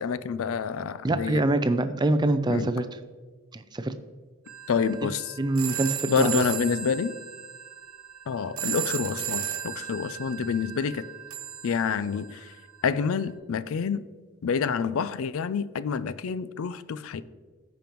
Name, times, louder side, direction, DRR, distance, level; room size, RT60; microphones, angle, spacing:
voice 1, 0.0-1.4 2.5-2.7 4.7-5.4 6.1-7.2 8.3-11.0 11.6-12.5 12.8-14.0 14.4-17.2, left 6 dB, 75° left, 15 dB, 0.4 m, -28 dB
voice 2, 1.0-2.9 3.5-3.9 5.0-5.1 5.4-6.4, right 2 dB, 20° right, 10 dB, 0.4 m, -25 dB
sound 1, 4.5-12.5, right 10 dB, 80° right, 1.1 m, -35 dB
14.5 x 5.1 x 3.0 m, 1.4 s
head